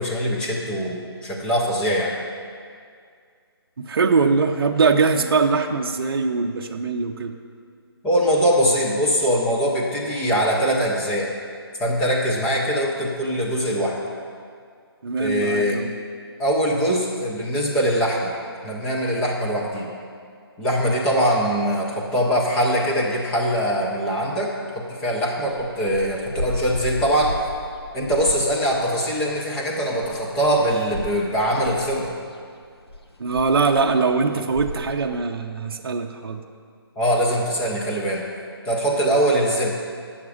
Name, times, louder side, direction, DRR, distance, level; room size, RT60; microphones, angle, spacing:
voice 1, 0.0-2.2 8.0-11.3 11.8-14.0 15.2-15.8 16.4-18.3 18.6-19.9 20.6-27.4 27.9-32.2 37.0-38.2 38.6-39.7, equal, 5° left, -3 dB, 0.5 m, -22 dB
voice 2, 3.8-7.3 15.0-15.9 33.2-36.4, right 4 dB, 60° right, 3 dB, 0.6 m, -22 dB
sound 1, 25.5-35.2, left 1 dB, 75° left, 1.0 m, -35 dB
9.6 x 7.2 x 4.9 m, 2.2 s
hypercardioid pair, 165°, 14 cm